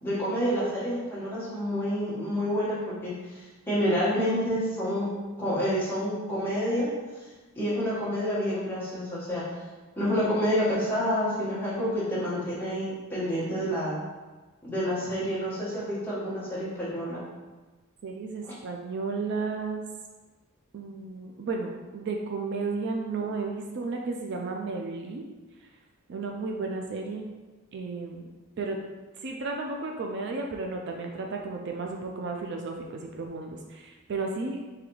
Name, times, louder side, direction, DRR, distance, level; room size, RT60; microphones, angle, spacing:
voice 1, 0.0-3.4 3.7-5.1 5.4-6.9 7.2-7.3 7.5-9.4 10.0-13.9 14.6-17.2 18.4-18.5, equal, 10° left, -10 dB, 1.3 m, -28 dB
voice 2, 18.0-19.8 20.7-25.2 26.1-27.3 27.7-28.3 28.6-28.8 29.2-34.6, right 3 dB, 50° right, 1 dB, 0.3 m, -33 dB
3.8 x 3.3 x 3.1 m, 1.2 s
head